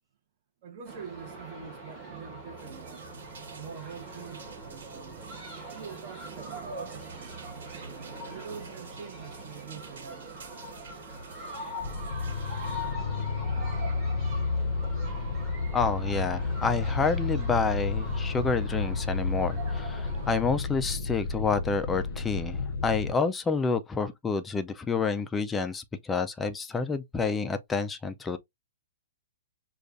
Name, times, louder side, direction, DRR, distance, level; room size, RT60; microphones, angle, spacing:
voice 1, 0.6-3.1 3.6-5.2 5.7-7.5 8.2-10.6, right 6 dB, 35° right, 0.9 m, -45 dB
sound 1, 0.8-20.4, right 1 dB, 15° right, 1.3 m, -42 dB
sound 2, 2.6-12.9, right 3 dB, 70° right, 1.5 m, -49 dB
sound 3, 11.8-23.1, left 4 dB, 65° left, 0.6 m, -31 dB
voice 2, 15.7-28.4, left 4 dB, 10° left, 0.3 m, -29 dB
6.4 x 2.3 x 2.5 m
hypercardioid pair, 165°, 0 cm